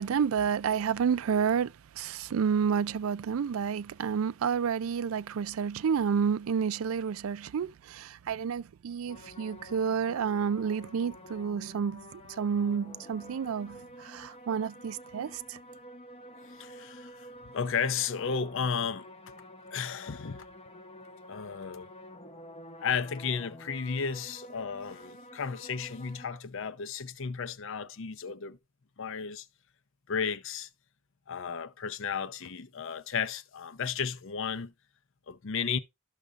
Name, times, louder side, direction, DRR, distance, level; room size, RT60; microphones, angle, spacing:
voice 1, 0.0-15.6, right 7 dB, 75° right, 0.4 m, -30 dB
sound 1, 9.1-26.4, left 1 dB, 30° left, 0.8 m, -49 dB
voice 2, 16.4-19.1 19.7-20.5 21.3-21.9 22.8-28.6 29.0-29.5 30.1-30.7 31.3-34.7 35.3-35.8, left 6 dB, 65° left, 0.6 m, -34 dB
12.5 x 6.5 x 2.4 m
head